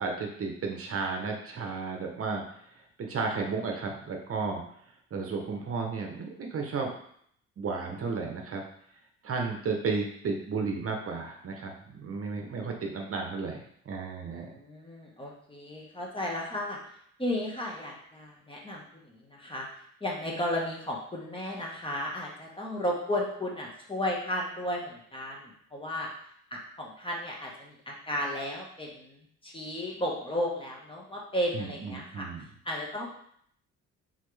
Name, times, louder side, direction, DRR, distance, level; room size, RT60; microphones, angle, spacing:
voice 1, 0.0-2.4 2.7-4.6 5.1-6.9 7.6-8.6 9.2-13.6 13.8-14.5 31.5-32.4, right 4 dB, 50° right, 2 dB, 0.8 m, -33 dB
voice 2, 14.2-16.8 17.2-19.7 20.0-26.1 26.5-32.3 32.6-33.1, left 1 dB, 15° left, -2 dB, 1.2 m, -34 dB
4.2 x 3.7 x 3.2 m, 0.66 s
cardioid pair, 90°, 30 cm